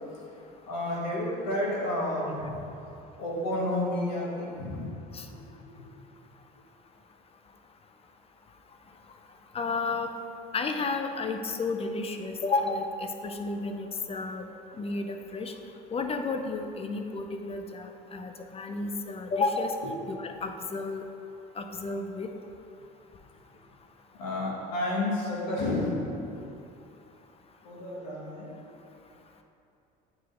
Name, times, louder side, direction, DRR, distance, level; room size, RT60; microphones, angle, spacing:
voice 1, 0.7-2.6 3.2-4.8 5.8-5.9 24.2-26.0 27.6-28.5, left 1 dB, 85° left, -4 dB, 1.4 m, -30 dB
voice 2, 9.5-10.1 10.5-14.5 14.8-15.5 15.9-19.8 20.1-21.0 21.6-22.3, left 3 dB, 30° left, 5 dB, 0.6 m, -32 dB
9.0 x 4.8 x 2.5 m, 2.7 s
hypercardioid pair, 70°, 21 cm